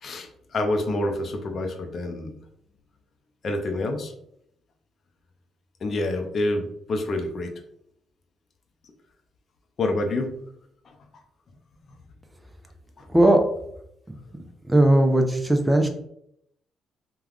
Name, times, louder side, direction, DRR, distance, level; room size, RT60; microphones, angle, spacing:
voice 1, 0.0-2.4 3.4-4.1 5.8-7.5 9.8-10.4 13.0-13.1, left 2 dB, 50° left, 4 dB, 0.6 m, -27 dB
voice 2, 14.7-15.9, right 1 dB, 15° right, 5 dB, 0.5 m, -17 dB
3.4 x 2.3 x 2.3 m, 0.73 s
cardioid pair, 90°, 0 cm